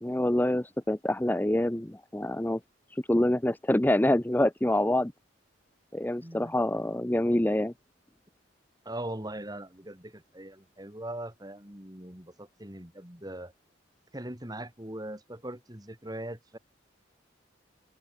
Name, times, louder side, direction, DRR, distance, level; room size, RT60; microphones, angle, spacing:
voice 1, 0.0-2.6 2.9-5.1 5.9-7.7, left 1 dB, 10° left, 0.6 m, -26 dB
voice 2, 6.2-6.5 8.8-13.5 14.1-16.6, right 1 dB, 20° right, 3.4 m, -40 dB
open air
head